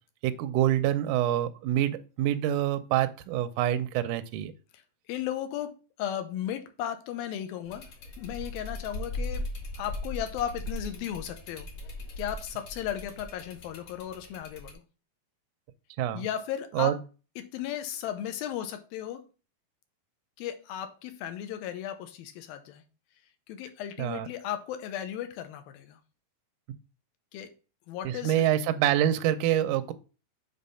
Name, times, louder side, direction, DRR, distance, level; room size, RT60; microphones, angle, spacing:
voice 1, 0.2-4.5 16.0-16.3 16.7-17.0 24.0-24.3 28.0-29.9, right 12 dB, 80° right, 9 dB, 1.9 m, -26 dB
voice 2, 5.1-7.9 8.2-9.5 9.8-11.7 12.2-14.8 16.1-16.9 17.4-19.2 20.4-22.8 23.5-26.0 27.3-27.5 27.9-28.4, left 10 dB, 80° left, 9 dB, 2.7 m, -35 dB
sound 1, 7.7-14.7, left 1 dB, 55° left, 2.3 m, -39 dB
7.3 x 3.7 x 5.5 m, 0.34 s
omnidirectional pair, 4.2 m